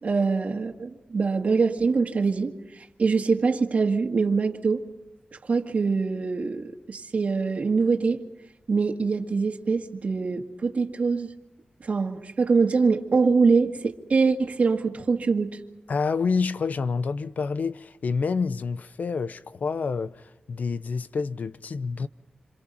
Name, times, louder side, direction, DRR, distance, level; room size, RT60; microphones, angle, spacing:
voice 1, 0.0-4.9 5.4-8.2 8.7-11.3 11.8-15.6, right 4 dB, 55° right, 1.8 m, -24 dB
voice 2, 15.9-22.1, left 5 dB, 70° left, 0.8 m, -28 dB
27.0 x 26.5 x 5.6 m
wide cardioid pair, 95°, 3 cm